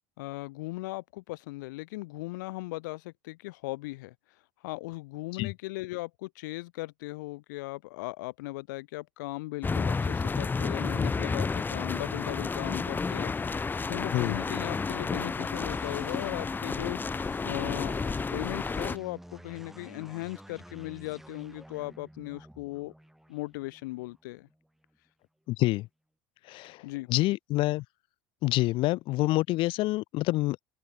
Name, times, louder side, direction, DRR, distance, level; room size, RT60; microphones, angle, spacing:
voice 1, 0.2-22.9 23.3-24.5 26.8-27.1, left 21 dB, 80° left, 1.1 m, -38 dB
sound 1, 9.6-19.0, left 4 dB, 20° left, 1.2 m, -31 dB
sound 2, 15.5-25.0, right 1 dB, 5° right, 6.4 m, -50 dB
voice 2, 25.5-25.9 26.5-26.8 27.1-27.8 28.4-30.6, left 19 dB, 60° left, 0.7 m, -27 dB
open air
supercardioid pair, 90°, 10 cm